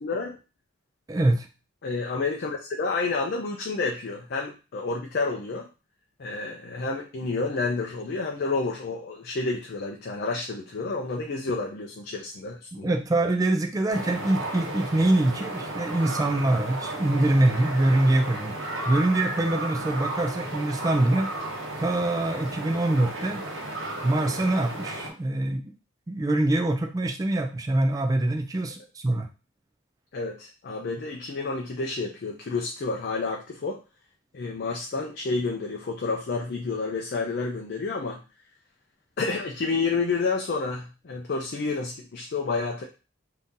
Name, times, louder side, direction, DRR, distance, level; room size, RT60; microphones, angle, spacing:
voice 1, 0.0-0.4 1.8-5.7 6.2-12.9 30.1-33.8 34.3-38.2 39.2-42.8, left 3 dB, 50° left, 1 dB, 0.4 m, -30 dB
voice 2, 1.1-1.5 12.7-18.5 18.9-21.3 21.8-23.4 24.0-25.6 26.1-29.3, right 1 dB, 15° right, 4 dB, 0.3 m, -24 dB
sound 1, 13.9-25.1, right 1 dB, 65° right, 1.0 m, -34 dB
2.7 x 2.6 x 3.6 m, 0.32 s
head